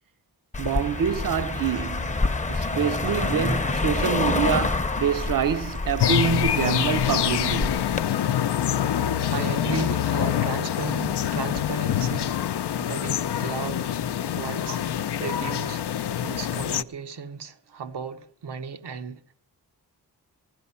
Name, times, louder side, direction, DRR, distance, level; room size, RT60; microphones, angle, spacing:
Car passing by, 0.5-8.0, left 3 dB, 20° left, 0.7 m, -27 dB
voice 1, 0.6-2.1 2.5-7.8, right 8 dB, 55° right, 0.6 m, -26 dB
sound 1, 6.0-16.8, left 10 dB, 75° left, 0.6 m, -25 dB
voice 2, 9.3-12.5 12.8-13.9 14.3-19.2, right 6 dB, 80° right, 0.9 m, -35 dB
16.0 x 11.0 x 5.6 m
wide cardioid pair, 85°, 40 cm